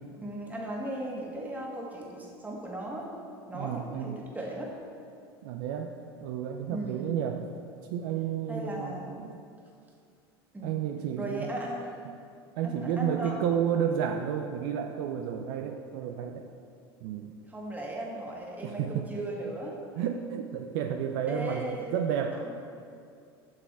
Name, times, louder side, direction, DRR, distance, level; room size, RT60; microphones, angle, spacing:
voice 1, 0.2-3.1 3.5-4.7 6.7-7.1 8.5-9.2 10.5-10.9 11.2-11.9 12.6-13.4 17.5-19.8 21.3-22.0 22.3-22.6, right 1 dB, 10° right, -2 dB, 1.9 m, -37 dB
voice 2, 3.5-4.2 5.4-5.9 6.2-7.4 7.9-9.4 10.6-11.5 12.6-16.5 17.0-17.4 18.6-19.0 20.0-21.7 21.9-22.6, right 8 dB, 65° right, 4 dB, 0.5 m, -31 dB
7.5 x 6.2 x 4.6 m, 2.4 s
hypercardioid pair, 80°, 13 cm